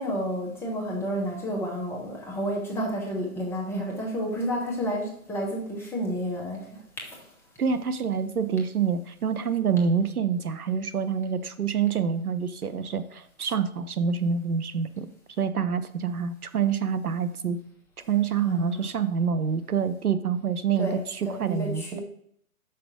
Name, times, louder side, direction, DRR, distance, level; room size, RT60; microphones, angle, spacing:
voice 1, 0.0-7.2 18.4-18.9 20.8-22.0, equal, 5° left, -2 dB, 1.1 m, -31 dB
voice 2, 7.6-15.1 15.4-17.6 18.1-21.8, right 6 dB, 85° right, 12 dB, 0.9 m, -26 dB
6.2 x 6.0 x 6.0 m, 0.67 s
hypercardioid pair, 145°, 43 cm